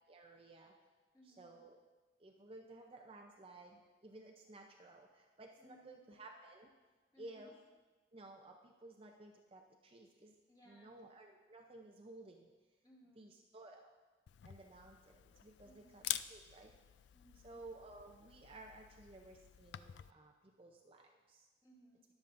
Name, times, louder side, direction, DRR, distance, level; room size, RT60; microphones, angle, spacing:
voice 1, 0.1-0.7 1.2-1.8 2.2-6.7 7.2-7.6 8.1-10.4 10.6-12.5 13.1-13.9 14.4-16.7 17.4-21.5, right 2 dB, 30° right, 1 dB, 0.6 m, -56 dB
voice 2, 1.1-1.5 5.6-6.0 7.1-7.5 10.5-11.0 12.8-13.2 15.6-16.0 17.1-17.5 21.6-22.0, equal, 25° left, -5 dB, 2.6 m, -64 dB
Camera, 14.3-20.1, left 13 dB, 65° left, 0.3 m, -47 dB
21.0 x 7.2 x 2.6 m, 1.3 s
head